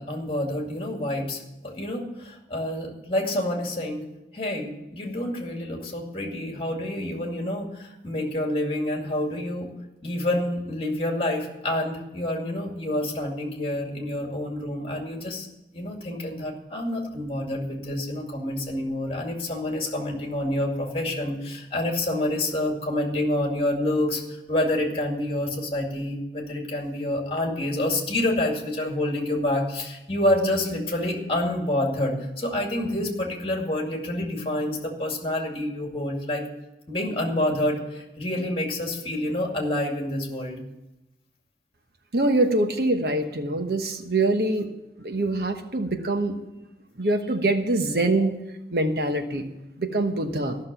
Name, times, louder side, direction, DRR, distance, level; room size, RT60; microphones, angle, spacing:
voice 1, 0.0-4.1 4.3-9.7 10.0-15.5 15.7-36.4 36.9-40.6, left 1 dB, 30° left, 1 dB, 2.3 m, -28 dB
voice 2, 42.1-44.7 45.0-46.4 47.0-48.4 48.7-49.5 49.8-50.6, right 2 dB, 60° right, 6 dB, 1.1 m, -24 dB
13.5 x 6.5 x 8.9 m, 0.95 s
head